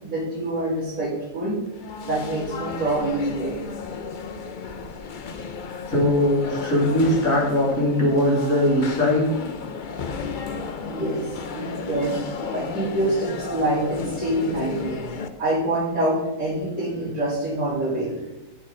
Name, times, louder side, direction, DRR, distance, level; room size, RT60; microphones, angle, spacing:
voice 1, 0.0-1.6 2.0-3.6 10.8-12.2 12.5-15.0 15.4-18.1, right 1 dB, 60° right, -11 dB, 5.1 m, -26 dB
sound 1, 1.7-15.3, left 5 dB, 85° left, 0.4 m, -34 dB
voice 2, 5.9-9.3, left 1 dB, 50° left, -5 dB, 3.4 m, -20 dB
18.5 x 6.6 x 3.9 m, 0.95 s
omnidirectional pair, 1.9 m